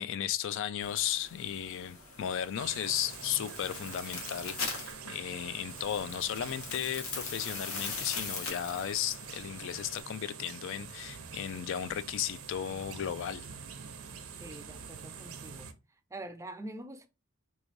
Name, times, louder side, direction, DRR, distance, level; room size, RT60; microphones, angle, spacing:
voice 1, 0.0-13.5, left 10 dB, 60° left, 0.3 m, -35 dB
sound 1, 0.8-10.0, left 4 dB, 85° left, 1.2 m, -42 dB
sound 2, 2.5-15.7, right 6 dB, 85° right, 0.6 m, -46 dB
voice 2, 14.4-15.7 16.1-17.1, right 1 dB, 15° right, 0.4 m, -44 dB
3.5 x 3.2 x 2.5 m
head